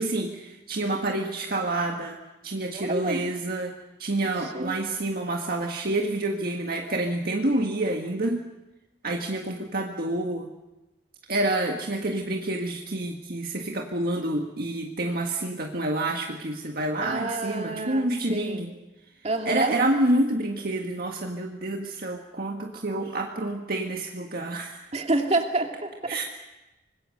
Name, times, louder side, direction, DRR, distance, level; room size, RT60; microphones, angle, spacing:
voice 1, 0.0-2.2 2.4-8.5 9.0-10.5 11.3-18.7 19.5-24.9 26.1-26.2, right 2 dB, 60° right, 1 dB, 1.7 m, -28 dB
voice 2, 2.7-3.2 4.5-4.8 17.0-18.7 19.2-19.8 24.9-26.2, right 2 dB, 40° right, 3 dB, 2.7 m, -28 dB
25.5 x 21.0 x 6.6 m, 1.0 s
head